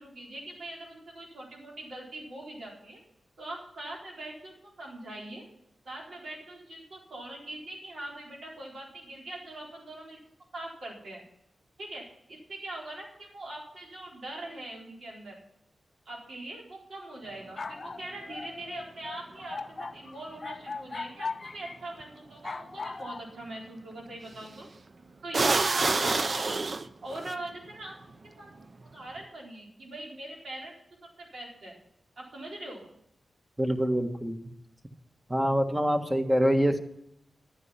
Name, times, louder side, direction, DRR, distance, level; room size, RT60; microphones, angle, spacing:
voice 1, 0.0-3.0 3.4-5.4 5.8-10.2 10.5-11.2 11.8-15.3 16.1-24.7 25.2-26.6 27.0-27.9 28.2-28.6 28.9-30.7 31.2-31.7 32.2-32.9, right 1 dB, 70° right, -2 dB, 4.1 m, -42 dB
sound 1, 17.3-21.8 22.4-23.2, left 4 dB, 50° left, 0.5 m, -39 dB
sound 2, 22.0-22.1 24.3-24.6 25.3-27.3, right 3 dB, 50° right, 0.6 m, -27 dB
voice 2, 33.6-34.5 35.3-36.8, equal, 15° right, 6 dB, 1.4 m, -25 dB
11.5 x 9.5 x 5.7 m, 0.79 s
cardioid pair, 70°, 0 cm